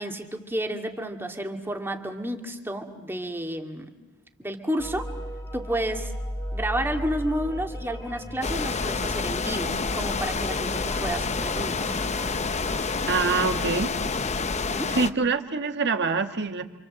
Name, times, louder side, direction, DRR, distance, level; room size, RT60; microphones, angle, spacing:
voice 1, 0.0-3.9 4.4-5.1 5.5-6.1 6.5-12.0 14.5-15.0, right 1 dB, 10° right, 4 dB, 2.2 m, -31 dB
sound 1, 4.8-13.7, equal, 15° left, 2.4 m, -37 dB
sound 2, 8.4-15.1, left 4 dB, 30° left, 0.9 m, -28 dB
voice 2, 13.1-13.9 14.9-16.6, right 4 dB, 55° right, 7 dB, 1.7 m, -25 dB
29.0 x 26.5 x 7.6 m, 1.2 s
head